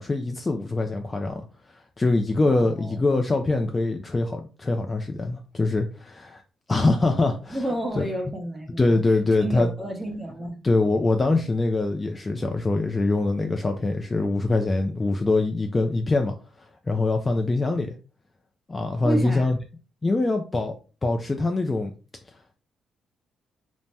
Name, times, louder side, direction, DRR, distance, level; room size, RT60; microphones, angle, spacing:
voice 1, 0.0-6.4 6.7-7.6 8.0-8.1 8.8-9.7 10.6-16.3 16.9-17.9 18.7-19.6 20.0-21.9, left 2 dB, 25° left, 0.3 m, -24 dB
voice 2, 2.4-3.0 6.8-9.0 9.4-10.6 19.0-19.5, right 1 dB, 5° right, 0.8 m, -31 dB
2.7 x 2.0 x 3.3 m
cardioid pair, 90°, 0 cm